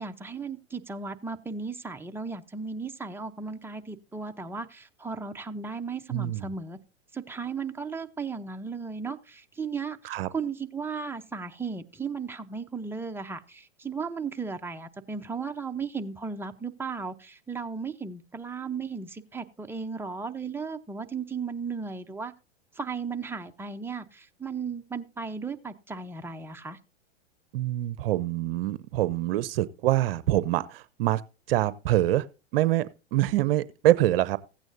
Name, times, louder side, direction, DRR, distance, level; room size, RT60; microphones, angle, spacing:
voice 1, 0.0-6.8 7.1-22.3 22.7-26.8, right 5 dB, 5° right, 0.7 m, -35 dB
voice 2, 6.1-6.5 10.0-10.3 27.5-31.2 31.5-32.3 32.5-34.4, right 14 dB, 55° right, 0.7 m, -25 dB
15.5 x 8.9 x 2.7 m
hypercardioid pair, 110°, 34 cm